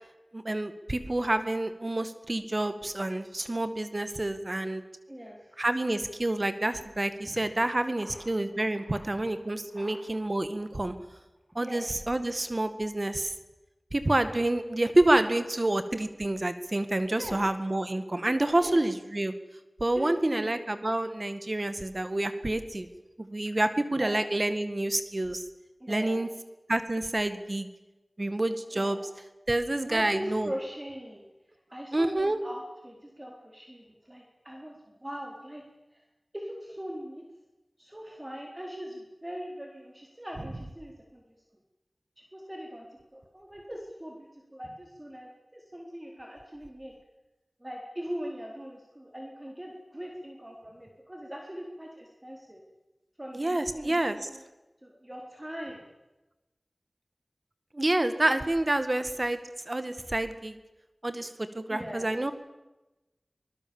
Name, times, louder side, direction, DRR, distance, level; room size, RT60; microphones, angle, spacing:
voice 1, 0.3-4.8 5.6-10.9 11.6-13.3 13.9-19.3 19.8-22.9 23.3-25.4 25.9-26.3 26.7-27.7 28.2-29.0 29.5-30.5 31.9-32.4 53.3-54.3 57.7-59.4 59.7-60.6 61.0-62.3, right 1 dB, 45° right, 10 dB, 1.8 m, -28 dB
voice 2, 5.1-5.5 7.2-7.4 8.0-8.3 8.8-9.3 9.7-10.2 11.6-11.8 17.1-17.4 18.5-18.8 19.9-20.6 24.0-24.2 25.8-26.2 28.7-29.1 29.9-31.2 31.7-35.6 35.9-36.0 36.3-37.2 37.8-41.2 42.3-42.9 43.1-46.9 47.6-52.6 53.2-54.4 54.8-55.8 61.7-62.2, equal, 20° right, 0 dB, 4.1 m, -41 dB
24.5 x 20.5 x 7.2 m, 1.0 s
wide cardioid pair, 50°, 0 cm